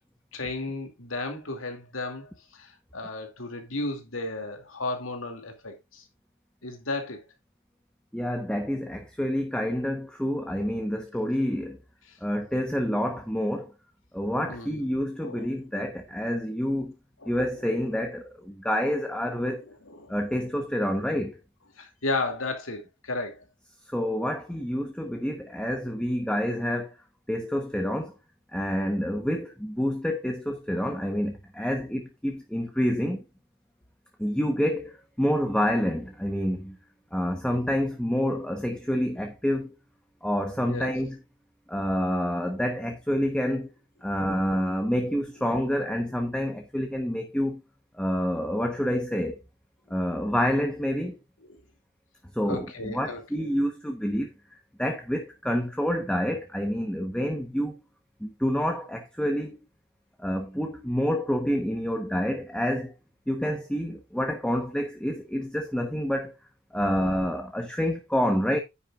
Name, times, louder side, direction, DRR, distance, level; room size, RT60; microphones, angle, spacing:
voice 1, 0.3-6.0 6.6-7.2 12.1-12.2 14.5-14.8 15.2-15.5 17.2-17.5 19.4-20.2 21.8-23.4 40.7-40.9 44.2-44.3 49.9-50.1 51.4-51.6 52.4-53.5, left 2 dB, 90° left, 2.5 m, -34 dB
voice 2, 8.1-11.8 12.2-13.7 14.1-17.0 17.3-19.6 20.1-21.4 23.9-26.9 27.3-28.1 28.5-33.2 34.2-36.8 37.1-39.7 40.2-41.2 41.7-43.7 44.0-47.6 47.9-49.4 49.9-51.2 52.4-54.3 54.8-57.8 58.2-59.6 60.2-62.9 63.3-66.3 66.7-68.6, equal, 5° left, 1.1 m, -28 dB
9.9 x 8.8 x 2.5 m
head